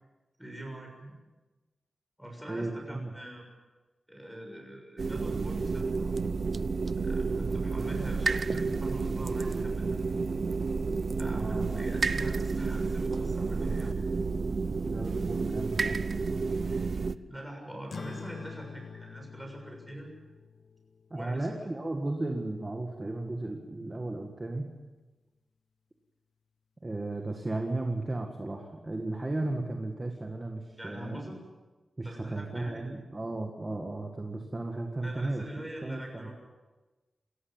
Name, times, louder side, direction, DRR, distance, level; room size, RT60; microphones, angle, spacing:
voice 1, 0.4-1.1 2.2-3.4 4.1-6.1 7.0-10.2 11.2-14.0 16.6-20.1 21.1-21.5 30.8-31.4 32.0-32.8 35.0-36.3, right 1 dB, ahead, 1 dB, 6.9 m, -43 dB
voice 2, 2.5-3.1 11.3-12.0 13.6-13.7 14.7-16.0 21.1-24.7 26.8-31.2 32.0-35.4 35.8-36.3, right 2 dB, 20° right, 2 dB, 1.9 m, -35 dB
sound 1, 5.0-17.1, right 4 dB, 40° right, 0.6 m, -30 dB
sound 2, 17.9-22.8, left 5 dB, 50° left, 1.0 m, -46 dB
28.5 x 14.0 x 8.9 m, 1.2 s
wide cardioid pair, 175°, 0 cm